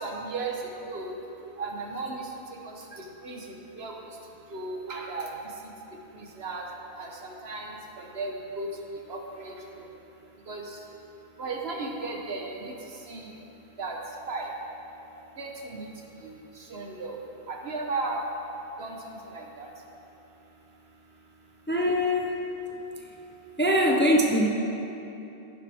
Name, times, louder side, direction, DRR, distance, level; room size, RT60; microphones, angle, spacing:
voice 1, 0.0-0.5 0.9-1.1 1.6-2.2 2.6-2.7 3.2-3.4 3.8-3.9 4.5-5.3 6.4-6.6 7.0-7.1 7.4-7.7 8.0-8.7 9.1-9.5 10.5-10.6 11.4-12.7 13.1-13.2 13.8-14.0 14.3-14.5 15.4-15.9 16.2-16.4 16.7-17.1 17.5-18.2 18.8-19.0 19.3-19.7, right 3 dB, 70° right, 0 dB, 1.4 m, -34 dB
voice 2, 21.7-22.3 23.6-24.5, equal, 15° left, 0 dB, 0.6 m, -22 dB
11.0 x 11.0 x 3.6 m, 3.0 s
omnidirectional pair, 1.1 m